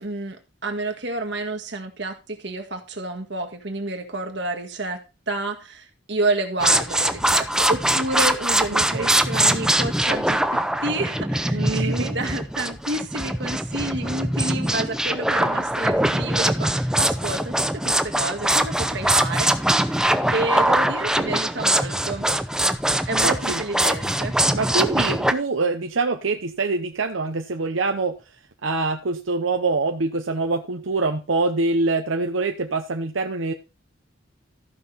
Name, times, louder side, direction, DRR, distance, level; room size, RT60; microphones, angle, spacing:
voice 1, 0.0-5.0 5.3-20.0 20.3-22.3 23.1-24.3, right 2 dB, 65° right, 4 dB, 1.8 m, -30 dB
sound 1, 6.6-25.3, right 1 dB, 5° right, 0.6 m, -22 dB
voice 2, 8.7-9.1 11.5-12.2 23.2-23.6 24.5-28.1 28.6-33.5, right 3 dB, 90° right, 5 dB, 0.8 m, -25 dB
14.0 x 5.8 x 4.1 m, 0.29 s
head